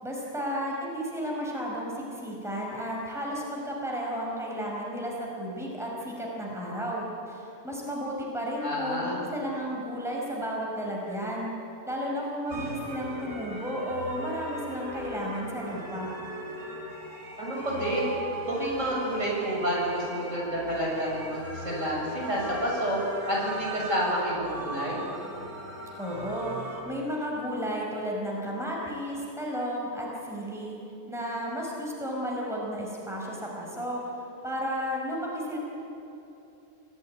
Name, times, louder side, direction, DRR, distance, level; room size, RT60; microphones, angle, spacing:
voice 1, 0.0-11.5 11.9-16.1 26.0-26.6 26.8-30.8 31.1-34.1 34.4-35.6, equal, ahead, -3 dB, 5.3 m, -33 dB
voice 2, 8.6-9.2 17.4-18.1 18.5-25.0, equal, 55° right, -4 dB, 7.7 m, -29 dB
sound 1, 12.5-26.8, right 1 dB, 80° right, 4.7 m, -39 dB
28.0 x 18.5 x 9.9 m, 3.0 s
omnidirectional pair, 1.6 m